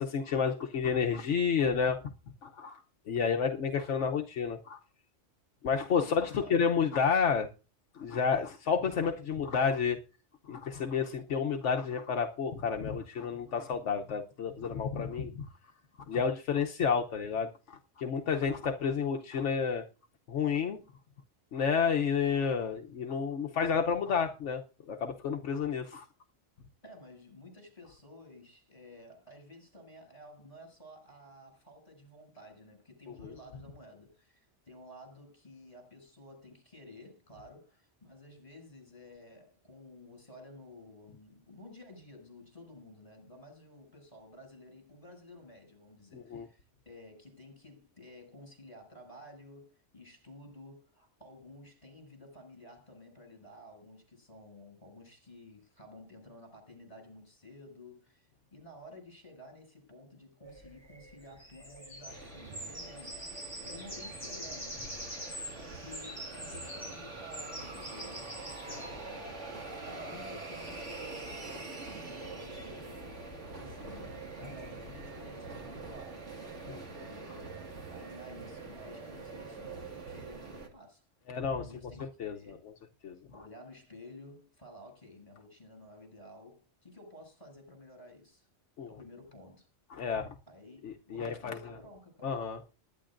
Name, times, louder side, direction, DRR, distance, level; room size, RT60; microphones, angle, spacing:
voice 1, 0.0-2.0 2.4-2.8 3.1-4.8 5.6-7.5 7.9-10.0 10.5-15.3 16.1-19.8 20.3-20.8 21.5-24.6 24.9-26.1 46.1-46.5 68.7-68.8 81.3-81.6 82.2-82.6 83.0-83.2 88.8-88.9 89.9-90.3 90.8-91.6 92.2-92.6, left 6 dB, 80° left, 1.2 m, -30 dB
voice 2, 6.0-6.6 26.8-63.3 63.7-64.9 65.4-76.3 76.7-77.6 77.9-81.1 81.6-82.7 83.3-88.5 88.9-89.7 90.5-92.5, left 1 dB, 30° left, 6.9 m, -52 dB
sound 1, 60.4-75.9, equal, 20° right, 7.6 m, -46 dB
sound 2, 62.1-80.7, right 3 dB, 80° right, 2.3 m, -44 dB
20.5 x 10.5 x 2.5 m
omnidirectional pair, 1.2 m